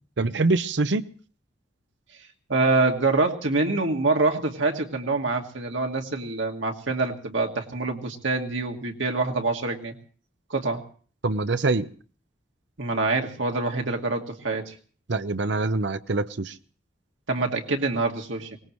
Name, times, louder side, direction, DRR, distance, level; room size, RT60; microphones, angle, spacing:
voice 1, 0.2-1.1 11.2-11.9 15.1-16.5, right 3 dB, 65° right, 0.8 m, -24 dB
voice 2, 2.5-9.9 10.5-10.8 12.8-14.7 17.3-18.6, right 3 dB, 85° right, 2.1 m, -25 dB
24.0 x 19.0 x 3.1 m
head